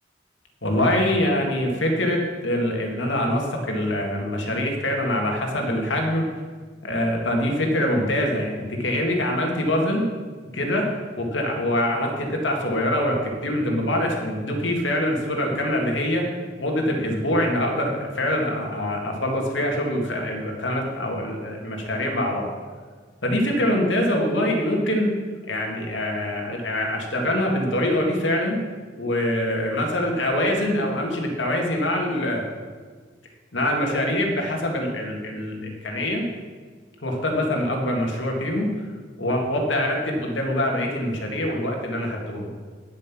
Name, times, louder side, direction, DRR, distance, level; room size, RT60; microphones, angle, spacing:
voice 1, 0.6-6.3 6.8-10.1 10.5-10.8 11.2-16.3 16.6-22.5 23.2-25.1 25.5-28.6 29.0-32.4 33.5-36.3 37.0-38.7 39.2-42.5, left 1 dB, 85° left, 1 dB, 2.0 m, -24 dB
10.0 x 7.5 x 6.1 m, 1.5 s
head